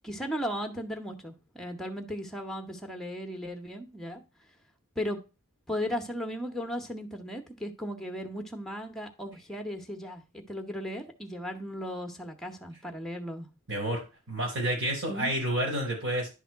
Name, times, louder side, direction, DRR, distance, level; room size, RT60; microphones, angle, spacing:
voice 1, 0.0-4.2 5.0-5.2 5.7-10.2 10.5-13.5 15.1-15.3, equal, ahead, 5 dB, 1.0 m, -36 dB
voice 2, 13.7-16.3, right 1 dB, 65° right, 0 dB, 5.0 m, -30 dB
10.5 x 3.5 x 4.6 m, 0.30 s
head